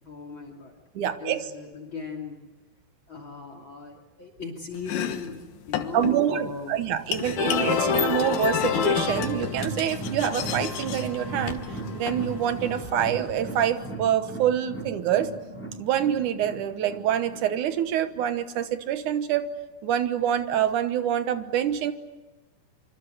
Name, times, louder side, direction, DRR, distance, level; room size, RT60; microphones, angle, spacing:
voice 1, 0.0-2.4 3.1-7.0, left 4 dB, 35° left, 5 dB, 3.2 m, -38 dB
voice 2, 1.0-1.4 5.9-11.6 11.9-15.3 15.8-19.5 19.8-21.9, right 10 dB, 70° right, 10 dB, 2.5 m, -26 dB
Domestic sounds home sounds, 4.7-12.9, left 10 dB, 70° left, 2.6 m, -35 dB
sound 1, 7.4-13.7, left 7 dB, 85° left, 3.7 m, -29 dB
sound 2, 9.0-18.3 18.6-18.7 19.1-19.2, right 2 dB, 5° left, 4.8 m, -37 dB
25.5 x 25.5 x 8.4 m, 1.1 s
omnidirectional pair, 4.0 m